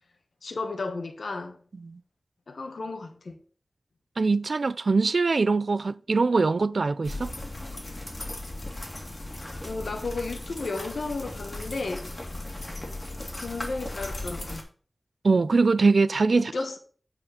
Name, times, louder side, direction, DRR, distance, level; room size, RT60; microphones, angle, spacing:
voice 1, 0.4-1.6 2.5-3.4 9.6-12.1 13.4-14.7 16.3-16.8, left 3 dB, 85° left, 1.2 m, -33 dB
voice 2, 4.2-7.3 15.2-16.5, right 4 dB, 65° right, 0.4 m, -22 dB
sound 1, 7.0-14.6, left 1 dB, 25° left, 2.2 m, -37 dB
8.8 x 4.4 x 5.6 m
wide cardioid pair, 85°, 0 cm